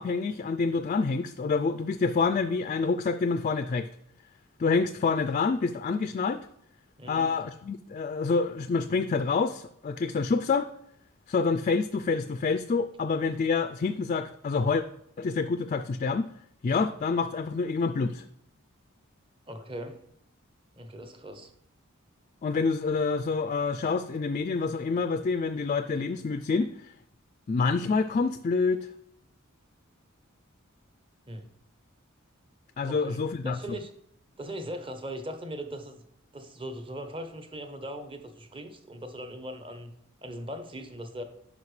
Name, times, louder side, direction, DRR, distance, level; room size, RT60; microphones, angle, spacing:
voice 1, 0.0-3.9 4.6-6.4 7.1-10.7 11.3-14.8 15.2-16.2 16.6-18.2 22.4-26.9 27.5-28.9 32.8-33.6, left 4 dB, 35° left, 9 dB, 0.3 m, -27 dB
voice 2, 7.0-7.3 19.5-20.0 20.7-21.5 31.3-31.5 32.9-33.9 34.4-36.0 36.3-39.9 40.2-41.2, equal, 25° right, 8 dB, 0.8 m, -39 dB
9.4 x 6.0 x 3.2 m, 0.72 s
head